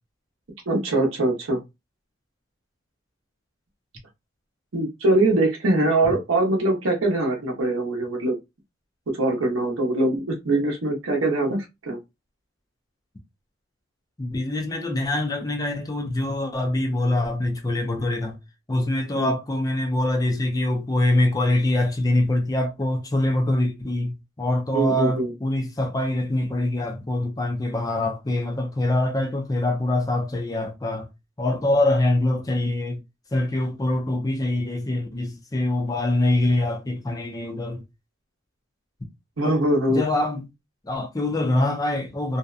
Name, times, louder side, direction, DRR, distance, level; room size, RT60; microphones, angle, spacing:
voice 1, 0.7-1.6 4.7-8.3 9.1-12.0 19.1-19.3 24.7-25.3 39.4-40.0, right 2 dB, 75° right, 0.7 m, -22 dB
voice 2, 14.2-18.4 18.7-31.1 31.4-33.0 33.3-37.8 39.9-40.4 40.8-42.4, left 1 dB, 20° left, 0.5 m, -24 dB
2.7 x 2.1 x 2.3 m
head